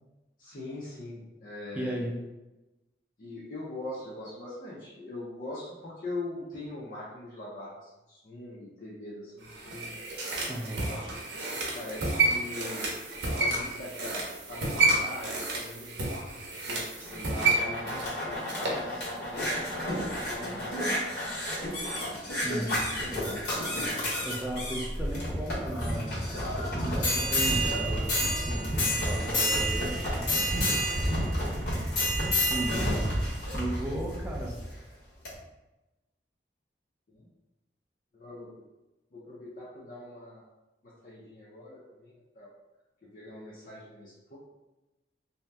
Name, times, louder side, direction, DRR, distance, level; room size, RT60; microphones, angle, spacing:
voice 1, 0.4-2.1 3.2-9.9 10.6-10.7 11.7-12.9 13.3-16.0 16.6-19.0 19.3-21.2 22.6-22.8 23.6-24.0 24.6-24.8 32.0-32.3 37.1-37.3 38.1-38.6 39.1-40.5 40.8-42.5 43.0-44.4, left 2 dB, 50° left, -7 dB, 0.6 m, -42 dB
voice 2, 1.8-2.2 10.5-10.9 22.4-31.5 32.2-33.1 33.5-34.6, right 1 dB, 10° right, -2 dB, 0.4 m, -37 dB
sound 1, 9.4-18.8 19.2-19.3, right 3 dB, 80° right, 0.7 m, -30 dB
sound 2, 17.0-34.7 35.3-35.4, equal, 70° left, 1.2 m, -30 dB
2.7 x 2.1 x 3.3 m, 1.0 s
head